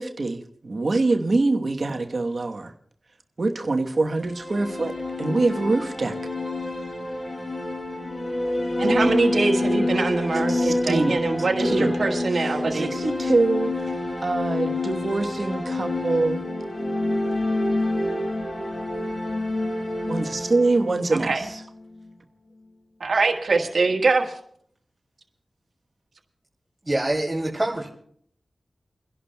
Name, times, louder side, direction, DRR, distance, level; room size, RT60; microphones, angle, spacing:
voice 1, 0.0-2.7 3.4-6.2 10.3-11.1 11.7-12.0 12.3-13.8 14.2-16.4 20.1-21.6, right 3 dB, 60° right, 1.1 m, -24 dB
sound 1, 4.1-22.1, left 2 dB, 55° left, 5.4 m, -27 dB
voice 2, 8.8-12.9 21.1-21.4 23.0-24.4, right 3 dB, 75° right, 1.4 m, -23 dB
voice 3, 26.8-27.9, right 1 dB, 15° right, 2.6 m, -25 dB
30.0 x 11.0 x 2.2 m
cardioid pair, 40°, 0 cm